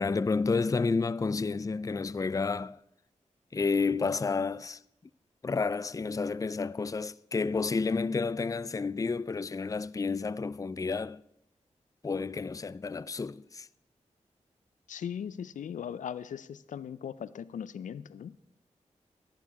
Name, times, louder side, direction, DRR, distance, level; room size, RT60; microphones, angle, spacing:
voice 1, 0.0-2.8 3.5-4.8 5.4-11.2 12.0-13.7, left 4 dB, 25° left, 0.4 m, -30 dB
voice 2, 14.9-18.4, left 8 dB, 90° left, 0.4 m, -39 dB
14.0 x 10.0 x 4.7 m
cardioid pair, 50°, 13 cm